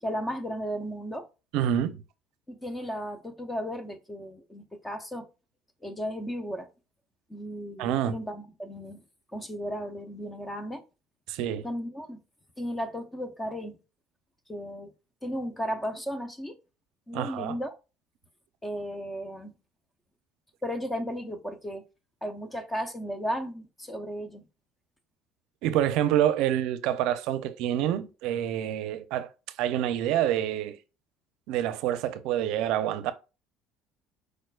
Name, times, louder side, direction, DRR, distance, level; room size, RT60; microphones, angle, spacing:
voice 1, 0.0-1.3 2.5-5.3 5.8-6.7 7.3-9.0 9.3-10.8 11.6-12.2 12.6-13.8 14.5-14.9 15.2-16.6 17.1-17.7 18.6-19.5 20.6-21.8 22.2-24.4, equal, 10° left, 0.6 m, -35 dB
voice 2, 1.5-2.0 7.8-8.2 11.3-11.7 17.1-17.6 25.6-29.3 29.6-30.8 31.5-33.1, right 11 dB, 65° right, 0.5 m, -27 dB
4.8 x 4.4 x 2.4 m
cardioid pair, 170°, 0 cm